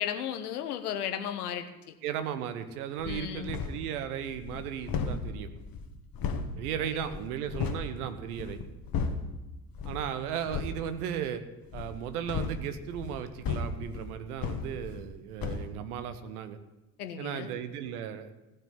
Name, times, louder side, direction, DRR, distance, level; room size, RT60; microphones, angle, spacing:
voice 1, 0.0-1.9 3.0-3.5 6.8-6.9 17.0-17.5, left 9 dB, 80° left, 9 dB, 1.1 m, -35 dB
voice 2, 2.0-5.5 6.6-8.6 9.8-11.4 11.7-16.6 17.2-18.3, right 9 dB, 75° right, 10 dB, 1.1 m, -36 dB
sound 1, 3.0-3.9 4.3-7.9 8.3-9.4 9.7-10.1 10.4-10.8 11.7-15.1 15.4-15.7, left 5 dB, 50° left, 1.7 m, -35 dB
15.5 x 5.7 x 9.4 m, 1.0 s
figure-of-eight pair, 50°, 45 cm